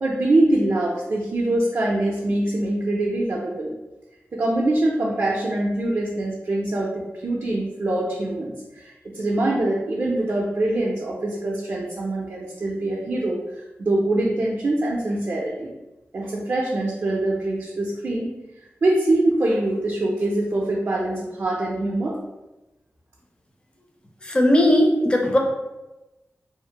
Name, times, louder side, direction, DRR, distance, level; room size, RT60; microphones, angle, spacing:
voice 1, 0.0-3.7 4.3-13.4 13.8-15.7 16.1-18.3 18.8-22.2, right 2 dB, 50° right, -4 dB, 0.4 m, -24 dB
voice 2, 24.2-25.4, left 1 dB, 20° left, 1 dB, 0.5 m, -18 dB
2.6 x 2.4 x 2.8 m, 1.0 s
wide cardioid pair, 125°, 5 cm